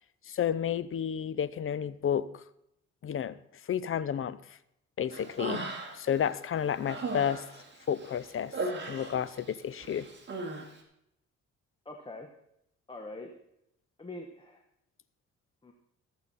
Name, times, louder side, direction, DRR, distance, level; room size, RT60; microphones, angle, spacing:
voice 1, 0.3-2.4 3.0-3.4 3.7-4.4 5.0-5.6 5.9-7.4 7.9-8.5 8.8-10.1, left 8 dB, 45° left, 16 dB, 0.6 m, -31 dB
Human voice, 5.1-6.2 6.6-9.5 9.8-10.7, right 2 dB, 40° right, 2.2 m, -37 dB
voice 2, 11.8-12.3 12.9-13.3 14.0-14.6 15.6-15.7, left 2 dB, 15° left, 3 dB, 1.2 m, -43 dB
14.5 x 8.1 x 4.1 m, 0.78 s
cardioid pair, 90°, 30 cm